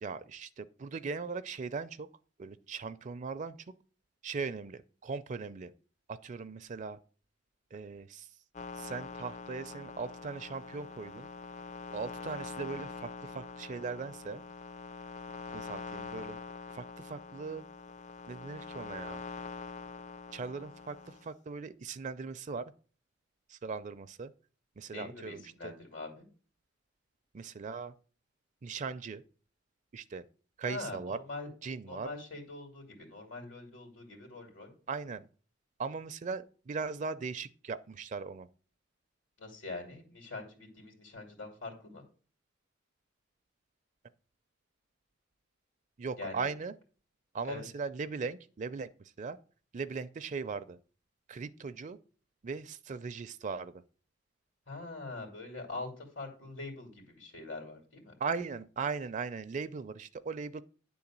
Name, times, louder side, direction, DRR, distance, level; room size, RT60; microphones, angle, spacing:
voice 1, 0.0-2.1 2.4-3.6 4.2-5.7 6.1-7.0 7.7-8.3 8.7-11.3 11.9-14.4 15.5-16.4 16.7-17.6 18.3-19.2 20.3-22.7 23.5-24.3 24.8-25.7 27.3-27.9 28.6-29.2 29.9-30.2 30.6-31.2 31.6-32.1 34.9-35.3 35.8-38.5 46.0-46.7 47.3-48.9 49.2-49.4 49.7-50.8 51.3-52.0 52.4-53.8 58.2-60.6, right 5 dB, 40° right, 0.4 m, -39 dB
sound 1, 8.5-21.3, left 4 dB, 40° left, 0.5 m, -44 dB
voice 2, 24.9-26.2 30.6-31.5 31.9-34.7 39.4-42.0 46.2-46.5 47.5-47.7 54.7-58.1, left 3 dB, 80° left, 2.6 m, -43 dB
10.0 x 3.9 x 7.3 m
head